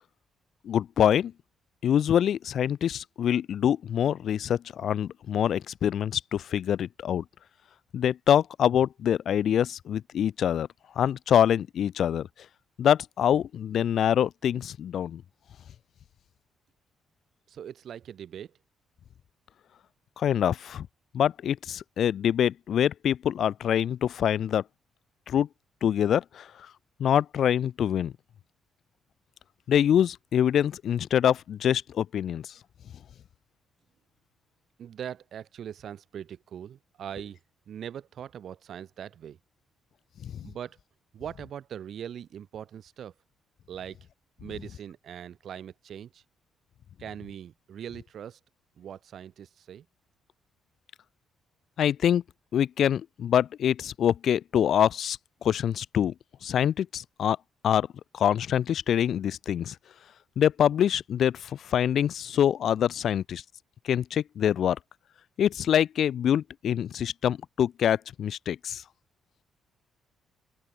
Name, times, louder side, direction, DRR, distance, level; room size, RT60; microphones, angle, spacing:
voice 1, 0.6-1.3 1.8-7.2 7.9-10.7 11.0-12.3 12.8-15.2 20.2-20.9 21.1-24.6 25.3-25.5 25.8-26.5 27.0-28.1 29.7-32.5 40.2-40.5 51.8-52.2 52.5-56.1 56.4-57.4 57.6-57.9 58.1-59.7 60.4-63.4 63.8-64.8 65.4-68.8, left 9 dB, 65° left, 2.4 m, -25 dB
voice 2, 17.5-18.5 34.8-37.4 37.7-39.4 40.4-40.8 41.1-43.1 43.7-44.1 44.4-46.2 47.0-48.4 48.8-49.8, right 9 dB, 65° right, 8.0 m, -41 dB
open air
cardioid pair, 80°, 0 cm